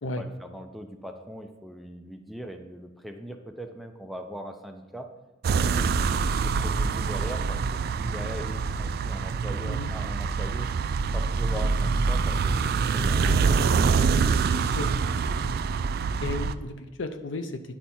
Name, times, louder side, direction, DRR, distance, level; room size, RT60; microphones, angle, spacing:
voice 1, 0.2-5.1 5.6-10.7 11.1-13.7, equal, ahead, 4 dB, 0.5 m, -40 dB
sound 1, 5.4-16.5, right 5 dB, 55° right, 0.3 m, -25 dB
voice 2, 9.6-9.9 14.6-15.9 16.2-17.8, left 2 dB, 85° left, 8 dB, 0.7 m, -35 dB
10.0 x 4.6 x 4.3 m, 1.1 s
head